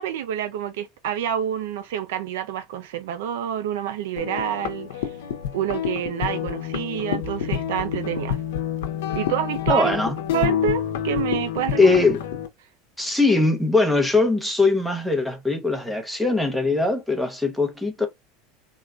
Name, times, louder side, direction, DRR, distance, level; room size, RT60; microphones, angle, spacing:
voice 1, 0.0-5.1 5.5-8.4 9.1-10.0 10.3-12.1, right 10 dB, 85° right, 0.5 m, -28 dB
sound 1, 4.2-12.5, left 9 dB, 90° left, 0.6 m, -28 dB
voice 2, 9.7-10.1 11.8-12.2 13.0-18.1, left 3 dB, ahead, 0.8 m, -21 dB
3.5 x 2.2 x 2.4 m
supercardioid pair, 150°, 0 cm